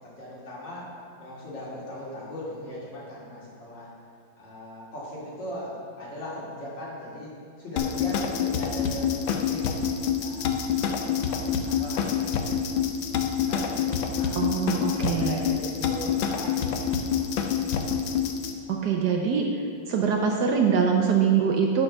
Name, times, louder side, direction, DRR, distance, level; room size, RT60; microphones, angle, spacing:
voice 1, 0.0-3.9 4.4-9.9 10.2-10.4 10.8-12.6 13.0-14.4 14.7-16.8 17.1-17.3, left 1 dB, 65° left, -7 dB, 3.2 m, -39 dB
sound 1, 7.8-18.5, left 7 dB, 85° left, 1.5 m, -27 dB
voice 2, 14.4-15.4 18.7-19.4 19.9-21.8, right 6 dB, 65° right, 1 dB, 1.1 m, -23 dB
9.7 x 5.3 x 6.0 m, 2.2 s
omnidirectional pair, 2.2 m